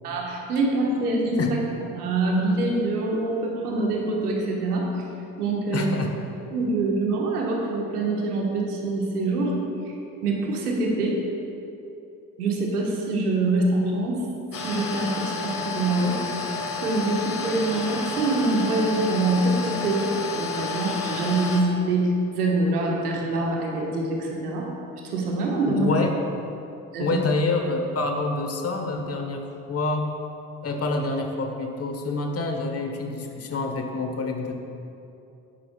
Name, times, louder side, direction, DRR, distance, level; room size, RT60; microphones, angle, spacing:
voice 1, 0.0-1.4 1.9-4.9 5.4-5.9 6.5-9.5 10.2-11.2 12.4-14.2 14.6-16.2 16.8-24.7 25.1-25.8 26.9-27.2, right 2 dB, 90° right, -1 dB, 1.6 m, -25 dB
voice 2, 5.7-6.1 25.7-26.1 27.0-30.1 30.6-34.5, left 3 dB, 30° left, 3 dB, 1.4 m, -27 dB
sound 1, 14.5-21.6, left 4 dB, 50° left, 2.0 m, -31 dB
15.0 x 10.5 x 2.4 m, 2.8 s
hypercardioid pair, 55°, 44 cm